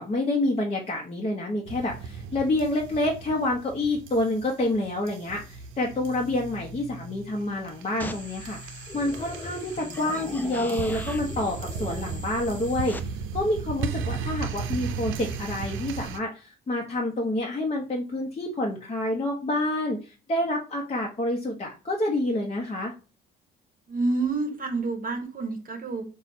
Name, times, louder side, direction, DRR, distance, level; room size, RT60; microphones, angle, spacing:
voice 1, 0.0-22.9, left 1 dB, 30° left, -1 dB, 0.8 m, -28 dB
sound 1, 1.7-16.2, right 5 dB, 85° right, 0.5 m, -36 dB
sound 2, 8.0-13.0, left 2 dB, 10° left, 0.4 m, -39 dB
voice 2, 23.9-26.0, right 3 dB, 45° right, 5 dB, 0.9 m, -28 dB
4.1 x 2.3 x 4.2 m, 0.33 s
cardioid pair, 90°, 20 cm